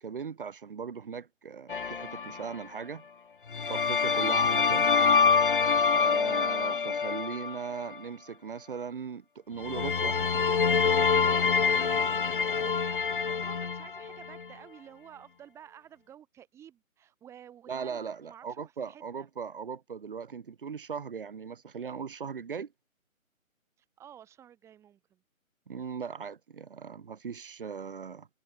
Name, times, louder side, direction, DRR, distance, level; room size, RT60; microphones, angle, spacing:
voice 1, 0.0-3.0 3.7-4.9 5.8-10.2 17.7-22.7 25.7-28.3, right 6 dB, 40° right, 1.8 m, -38 dB
sound 1, 1.7-2.5 3.5-8.0 9.6-14.5, left 5 dB, 40° left, 0.9 m, -26 dB
voice 2, 11.7-19.3 24.0-25.2, right 10 dB, 5° right, 2.4 m, -52 dB
figure-of-eight pair, 145°, 41 cm